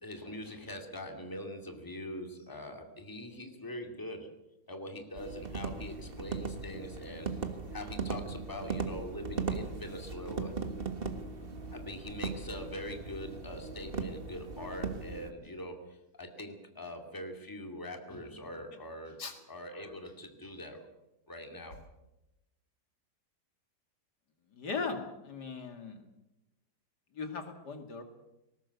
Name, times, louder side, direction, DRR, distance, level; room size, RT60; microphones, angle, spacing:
voice 1, 0.0-4.3 4.7-7.4 7.7-10.5 11.7-15.8 16.2-19.2 19.5-20.8 21.3-21.8, left 1 dB, 10° left, 4 dB, 2.3 m, -43 dB
sound 1, 5.2-15.3, right 4 dB, 35° right, 1.6 m, -38 dB
voice 2, 24.5-26.0 27.1-28.0, left 4 dB, 75° left, 6 dB, 2.8 m, -38 dB
19.5 x 19.0 x 8.2 m, 0.94 s
omnidirectional pair, 1.8 m